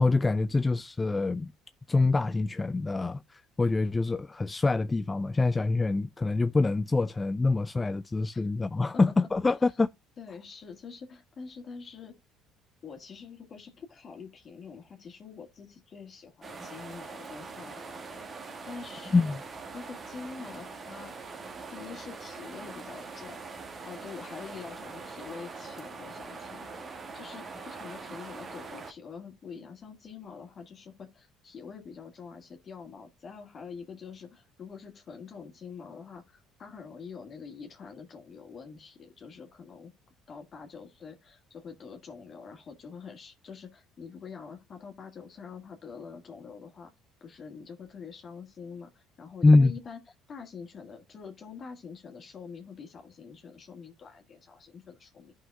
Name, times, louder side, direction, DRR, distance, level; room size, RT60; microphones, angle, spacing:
voice 1, 0.0-1.5 1.9-9.9 19.1-19.4 49.4-49.7, left 3 dB, 20° left, 0.4 m, -25 dB
voice 2, 10.2-12.2 12.8-19.3 19.7-21.1 21.7-23.4 23.8-26.9 27.1-39.9 40.3-46.9 47.2-50.0 50.3-55.3, left 5 dB, 45° left, 1.8 m, -45 dB
sound 1, 16.4-28.9, right 4 dB, 35° right, 1.6 m, -43 dB
15.0 x 5.6 x 2.2 m
hypercardioid pair, 65°, 0 cm